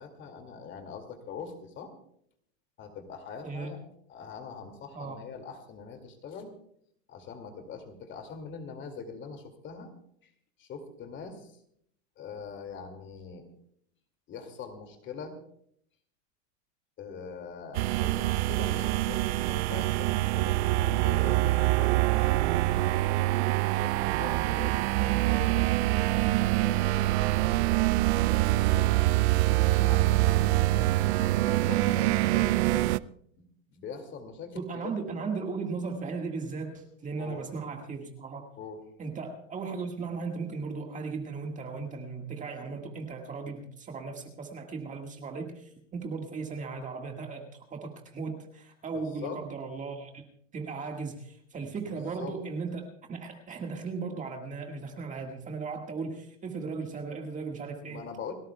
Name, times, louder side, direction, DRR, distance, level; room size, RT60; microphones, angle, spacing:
voice 1, 0.0-1.9 2.8-3.8 4.1-6.5 7.1-9.9 10.2-10.3 10.6-11.5 12.2-13.5 14.3-15.4 17.0-25.7 26.6-27.6 28.3-28.9 29.6-33.0 33.4-33.5 33.7-34.9 37.2-37.4 38.6-38.8 48.9-49.4 51.6-52.3 57.9-58.3, left 5 dB, 30° left, 6 dB, 2.3 m, -43 dB
sound 1, 17.8-33.0, right 18 dB, 60° right, 0.5 m, -25 dB
voice 2, 34.6-38.4 39.0-50.3 50.5-58.0, right 4 dB, 20° right, 3 dB, 1.7 m, -37 dB
29.5 x 13.0 x 2.3 m, 0.67 s
supercardioid pair, 135°, 39 cm